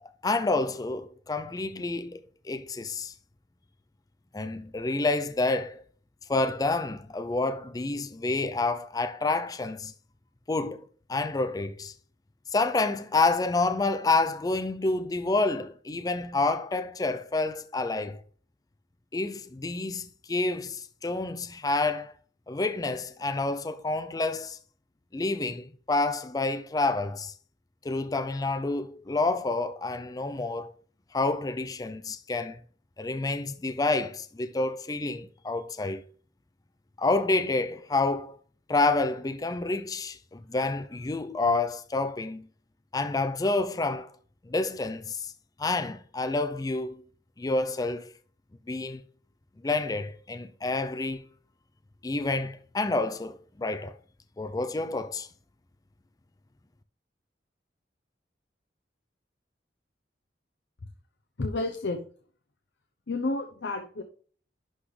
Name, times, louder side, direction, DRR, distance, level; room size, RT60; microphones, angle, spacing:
voice 1, 0.0-3.1 4.3-5.8 6.3-9.9 10.5-11.9 12.5-18.2 19.1-22.1 22.5-24.6 25.1-27.3 27.8-30.8 31.1-32.6 33.0-36.0 37.0-38.4 38.7-42.5 42.9-44.1 44.4-45.3 45.6-47.0 47.4-48.1 48.7-49.0 49.6-51.3 52.0-53.9 54.4-55.3, left 3 dB, 20° left, 0.4 m, -28 dB
voice 2, 61.4-62.0 63.1-64.0, left 2 dB, 85° left, 0.8 m, -30 dB
11.5 x 4.0 x 3.3 m
head